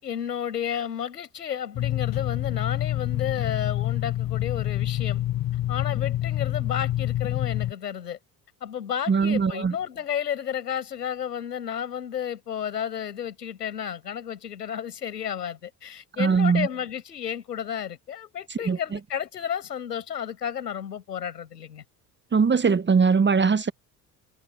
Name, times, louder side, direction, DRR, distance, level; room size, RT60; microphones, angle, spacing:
voice 1, 0.0-5.2 5.7-8.2 8.6-21.8, left 9 dB, 85° left, 7.4 m, -32 dB
sound 1, 1.8-7.7, left 13 dB, 45° left, 1.3 m, -27 dB
voice 2, 9.1-9.7 16.2-16.7 18.7-18.8 22.3-23.7, right 5 dB, 25° right, 1.3 m, -20 dB
figure-of-eight pair, 55°, 47 cm